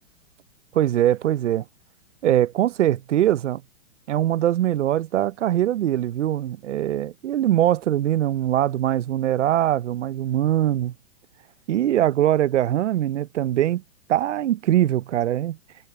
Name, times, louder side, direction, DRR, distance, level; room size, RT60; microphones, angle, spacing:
voice 1, 0.7-1.6 2.2-3.6 4.1-10.9 11.7-13.8 14.1-15.6, right 12 dB, 80° right, 0.7 m, -22 dB
hypercardioid pair, 155°, 35 cm